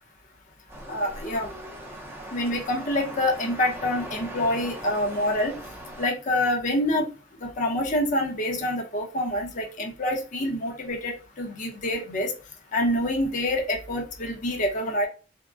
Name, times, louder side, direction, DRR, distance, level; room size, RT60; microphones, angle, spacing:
bolivar waves and stan, 0.7-6.1, right 1 dB, 15° right, 0.5 m, -40 dB
voice 1, 0.9-1.5 2.3-5.5 6.0-7.1 7.4-12.3 12.7-15.1, left 1 dB, 45° left, 1 dB, 0.7 m, -26 dB
3.5 x 2.0 x 2.3 m, 0.34 s
head